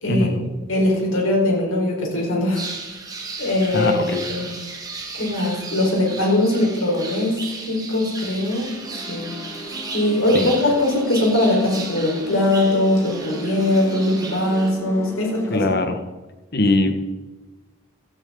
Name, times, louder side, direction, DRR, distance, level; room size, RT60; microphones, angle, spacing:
voice 1, 0.1-0.5 3.7-4.2 10.3-10.5 15.5-16.0 16.5-16.9, left 2 dB, 50° left, 6 dB, 1.6 m, -21 dB
voice 2, 0.7-2.7 3.4-3.9 4.3-4.5 5.1-9.3 9.9-15.6, left 1 dB, 75° left, -1 dB, 4.7 m, -21 dB
sound 1, 2.6-14.7, right 3 dB, 20° right, 1.9 m, -35 dB
sound 2, 8.8-15.7, left 1 dB, 15° left, 1.7 m, -36 dB
17.5 x 13.0 x 3.9 m, 1.2 s
head